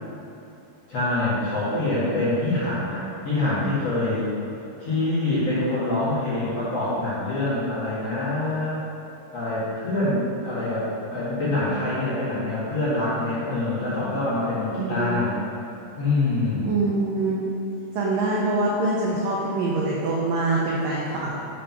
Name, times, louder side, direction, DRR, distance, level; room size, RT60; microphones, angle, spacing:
voice 1, 0.9-4.3 4.8-8.8 9.3-15.3 16.0-16.7, left 2 dB, 50° left, -11 dB, 2.1 m, -25 dB
voice 2, 14.8-15.1 16.7-17.4 17.9-21.4, right 2 dB, 90° right, -5 dB, 1.9 m, -24 dB
7.6 x 5.2 x 5.9 m, 2.8 s
omnidirectional pair, 5.3 m